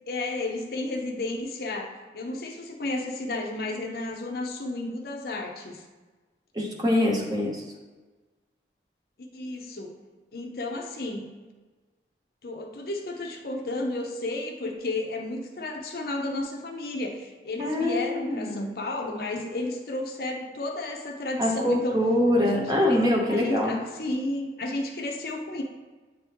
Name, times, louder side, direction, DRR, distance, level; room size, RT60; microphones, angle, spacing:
voice 1, 0.1-5.8 9.2-10.0 10.3-11.3 12.4-22.0 22.4-25.6, left 2 dB, 55° left, 2 dB, 0.6 m, -32 dB
voice 2, 6.5-7.6 17.6-18.7 21.4-23.7, left 1 dB, 20° right, -1 dB, 0.9 m, -24 dB
9.1 x 3.5 x 2.9 m, 1.3 s
head